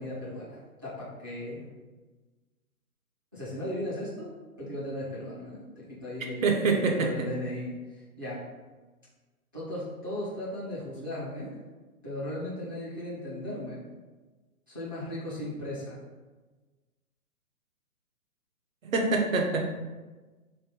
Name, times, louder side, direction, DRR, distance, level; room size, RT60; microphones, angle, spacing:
voice 1, 0.0-1.7 3.3-6.7 7.0-8.5 9.5-11.5 12.0-13.8 14.7-16.0, left 1 dB, 15° right, -9 dB, 0.4 m, -37 dB
voice 2, 6.4-7.3 18.8-19.6, right 3 dB, 60° right, 1 dB, 0.9 m, -25 dB
3.4 x 2.7 x 4.5 m, 1.2 s
hypercardioid pair, 140°, 45 cm